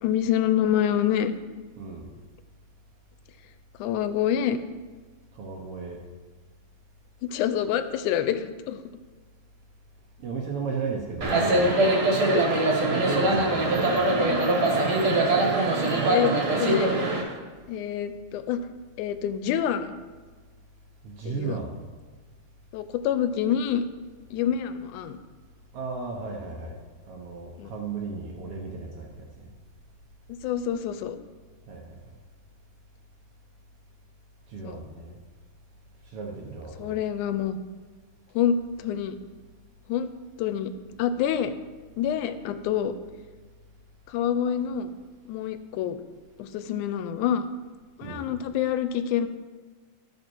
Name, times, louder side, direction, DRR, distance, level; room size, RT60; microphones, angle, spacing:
voice 1, 0.0-1.3 3.8-4.6 7.2-8.8 12.3-12.5 15.6-15.7 16.0-17.0 17.7-18.6 19.0-20.0 21.2-21.6 22.7-23.8 24.3-25.2 27.6-27.7 30.3-31.2 34.6-34.8 36.8-37.6 38.3-39.2 39.9-40.1 40.4-40.7 41.0-41.5 42.0-42.9 44.1-45.0 45.3-46.0 46.4-47.5 48.0-49.3, left 9 dB, 80° left, 11 dB, 1.9 m, -27 dB
voice 2, 1.8-2.1 5.3-6.0 10.2-11.9 12.8-14.0 21.0-21.8 25.7-26.8 27.1-29.5 31.7-32.0 34.5-35.2 36.1-37.0 48.0-48.3, right 4 dB, 70° right, 0 dB, 1.4 m, -35 dB
sound 1, 11.2-17.2, right 2 dB, 50° right, 1.9 m, -22 dB
13.5 x 5.8 x 4.5 m, 1.4 s
omnidirectional pair, 3.8 m